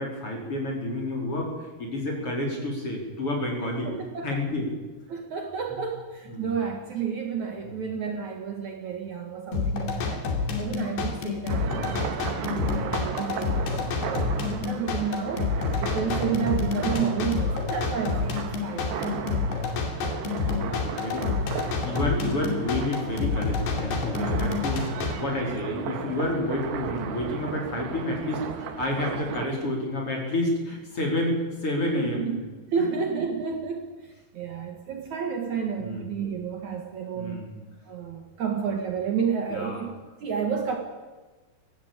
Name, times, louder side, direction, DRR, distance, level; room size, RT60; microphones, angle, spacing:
voice 1, 0.0-1.5 1.8-3.9 4.2-4.7 6.4-6.5 7.6-7.8 10.5-10.7 20.4-21.3 21.8-32.4 35.8-36.0 37.2-37.5 39.5-39.8, left 1 dB, 35° left, 0 dB, 5.4 m, -29 dB
voice 2, 3.8-4.4 5.1-10.3 10.5-15.5 15.8-18.9 31.9-32.4 32.7-37.4 37.8-39.9 40.2-40.8, right 6 dB, 55° right, 3 dB, 2.7 m, -31 dB
sound 1, 9.5-25.1, left 4 dB, 80° left, 4.6 m, -28 dB
sound 2, 11.5-29.5, right 7 dB, 85° right, 3.7 m, -35 dB
22.0 x 17.0 x 8.8 m, 1.2 s
omnidirectional pair, 4.7 m